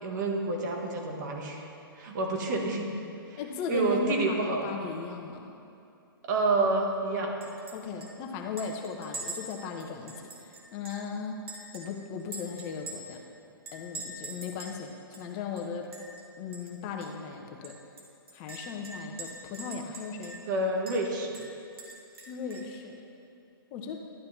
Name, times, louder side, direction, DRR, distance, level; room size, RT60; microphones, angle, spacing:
voice 1, 0.0-1.6 2.0-2.9 3.3-3.4 3.7-4.6 6.2-7.3 20.5-21.4, right 2 dB, 50° right, 1 dB, 1.5 m, -28 dB
voice 2, 3.4-5.5 7.7-11.5 11.7-13.2 13.7-15.9 16.4-17.8 18.3-20.5 22.3-23.0 23.7-24.0, left 5 dB, 35° left, 3 dB, 1.0 m, -37 dB
Chink clink, 7.4-7.8 8.0-8.1 8.6-11.1 11.5-13.2 13.7-14.8 15.1-15.2 15.6-16.2 16.5-16.7 17.0-17.1 17.6-20.5 20.9-21.0 21.3-22.7, right 2 dB, 75° right, 1.7 m, -43 dB
12.0 x 9.6 x 2.8 m, 2.6 s
hypercardioid pair, 125°, 12 cm